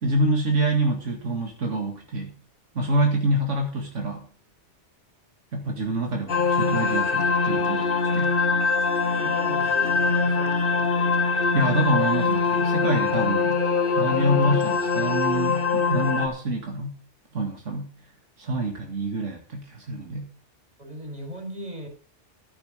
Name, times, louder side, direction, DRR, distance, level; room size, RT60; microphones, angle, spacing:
voice 1, 0.0-2.4 2.8-4.3 5.5-7.9 8.1-8.3 11.3-13.6 13.9-17.0 17.3-17.9 18.4-20.3, right 1 dB, 85° right, 2 dB, 2.4 m, -26 dB
sound 1, 6.3-16.3, left 4 dB, 50° left, 1.4 m, -23 dB
voice 2, 9.0-10.9 20.8-21.9, right 1 dB, 35° right, 4 dB, 4.4 m, -38 dB
12.5 x 11.0 x 4.9 m, 0.38 s
omnidirectional pair, 1.2 m